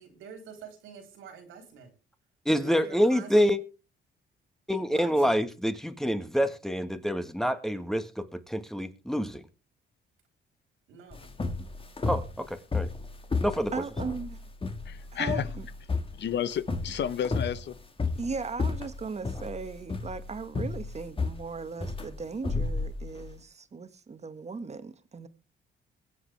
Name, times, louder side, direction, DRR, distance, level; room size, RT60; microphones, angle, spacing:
voice 1, 0.0-1.9 2.6-3.6 4.7-5.5 10.9-11.4, right 6 dB, 90° right, 3.8 m, -47 dB
voice 2, 2.4-3.6 4.7-9.4 12.0-12.9 13.4-13.7, equal, ahead, 1.5 m, -27 dB
sound 1, 11.1-23.3, left 3 dB, 25° left, 2.0 m, -32 dB
voice 3, 13.7-14.4 15.1-15.6 18.1-25.3, right 4 dB, 35° right, 1.6 m, -37 dB
voice 4, 14.9-15.5 16.1-17.8, left 9 dB, 65° left, 1.1 m, -31 dB
22.5 x 7.9 x 3.4 m
cardioid pair, 90°, 20 cm